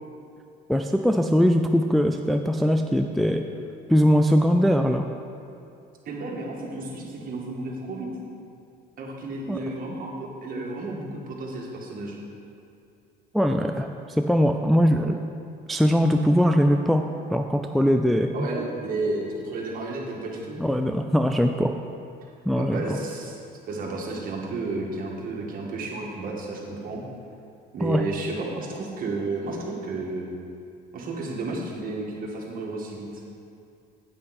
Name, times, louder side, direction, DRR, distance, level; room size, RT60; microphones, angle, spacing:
voice 1, 0.7-3.5 3.9-5.0 9.5-9.6 13.3-15.2 15.7-17.0 17.3-18.5 20.6-21.7 22.5-23.0 27.8-28.0, equal, ahead, 4 dB, 0.3 m, -21 dB
voice 2, 6.1-8.1 9.0-12.2 18.3-20.6 22.6-23.4 23.7-27.0 27.7-30.3 30.9-33.2, right 3 dB, 50° right, -2 dB, 2.0 m, -32 dB
9.8 x 8.6 x 4.3 m, 2.6 s
cardioid pair, 110°, 19 cm